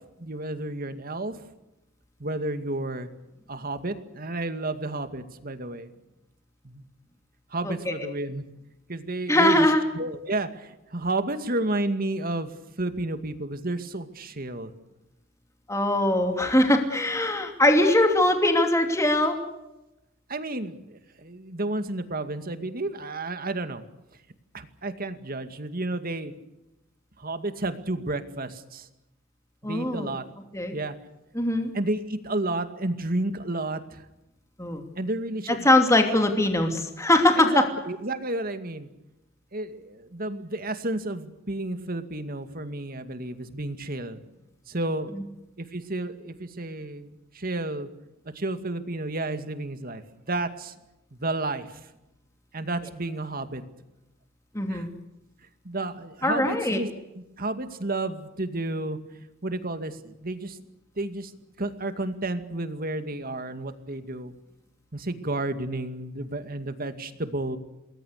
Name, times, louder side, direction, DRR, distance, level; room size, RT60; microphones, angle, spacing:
voice 1, 0.2-1.4 2.2-3.1 3.5-5.9 6.6-6.8 7.5-8.4 8.9-9.7 9.9-12.5 12.8-14.7 20.3-23.8 24.5-26.3 27.2-28.9 29.6-30.2 30.7-30.9 31.7-34.0 35.0-35.7 37.4-38.9 39.5-44.2 44.7-45.1 45.6-47.9 48.3-50.0 50.3-50.7 51.1-51.7 52.5-53.6 54.7-54.8 55.6-56.9 57.1-59.0 59.4-60.6 61.0-61.3 61.6-64.3 64.9-67.6, right 2 dB, 45° right, 9 dB, 2.3 m, -31 dB
voice 2, 9.3-9.8 15.7-19.4 29.6-30.1 30.5-30.8 31.3-31.7 34.6-34.8 35.5-37.7 45.1-45.2 54.5-54.9 56.2-56.8, left 1 dB, 15° left, 4 dB, 2.8 m, -21 dB
28.5 x 21.0 x 6.7 m, 0.93 s
head